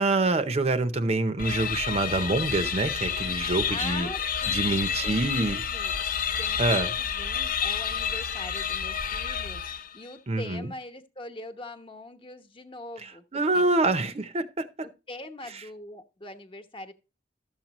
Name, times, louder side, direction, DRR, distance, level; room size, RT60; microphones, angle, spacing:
voice 1, 0.0-4.1 4.5-5.6 6.6-6.9 10.3-10.7 13.3-14.9, right 2 dB, 35° right, 0.7 m, -26 dB
sound 1, 1.4-10.1, left 7 dB, 50° left, 0.6 m, -30 dB
voice 2, 3.7-6.0 6.4-9.6 9.9-13.7 15.1-16.9, left 2 dB, 30° left, 1.1 m, -42 dB
12.5 x 7.3 x 2.9 m
head